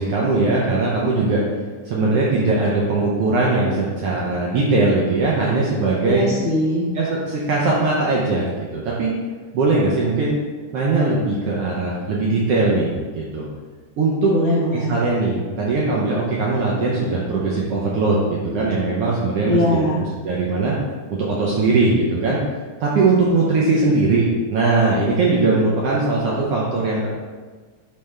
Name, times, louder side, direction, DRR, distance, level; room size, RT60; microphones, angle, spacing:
voice 1, 0.0-1.4 1.8-6.3 6.9-9.1 9.5-10.3 10.7-13.5 14.0-14.3 14.7-19.9 20.2-20.7 21.1-22.4 22.8-27.1, right 3 dB, 75° right, -5 dB, 1.4 m, -20 dB
voice 2, 6.0-6.9 14.3-15.0 19.5-20.0, left 1 dB, 80° left, -5 dB, 1.1 m, -21 dB
8.8 x 3.4 x 3.3 m, 1.4 s
omnidirectional pair, 3.6 m